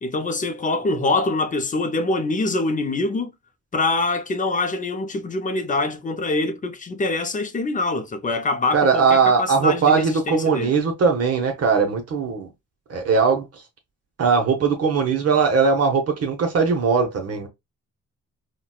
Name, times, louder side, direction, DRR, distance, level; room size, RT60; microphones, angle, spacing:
voice 1, 0.0-3.3 3.7-10.7, left 2 dB, 25° left, 0.6 m, -24 dB
voice 2, 8.7-12.5 12.9-13.5 14.2-17.5, right 5 dB, 55° right, 0.8 m, -19 dB
3.9 x 2.2 x 2.3 m
cardioid pair, 90°, 30 cm